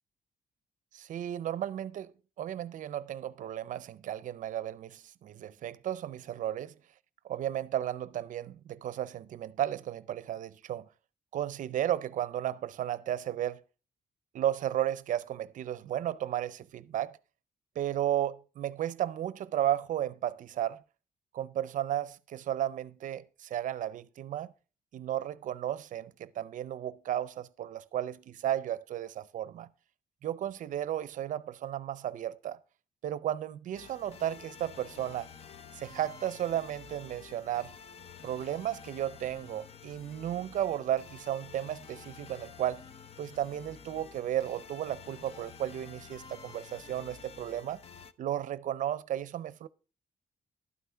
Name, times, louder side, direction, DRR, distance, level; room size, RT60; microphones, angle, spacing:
voice 1, 0.9-6.7 7.2-10.9 11.3-13.6 14.3-17.2 17.8-20.8 21.3-24.5 24.9-29.7 30.2-32.6 33.0-35.3 35.7-37.7 38.2-42.8 43.2-47.8 48.2-49.7, right 11 dB, 65° right, 0.5 m, -34 dB
sound 1, 33.7-48.1, left 6 dB, 45° left, 0.6 m, -50 dB
12.0 x 9.4 x 3.4 m
cardioid pair, 160°, 15 cm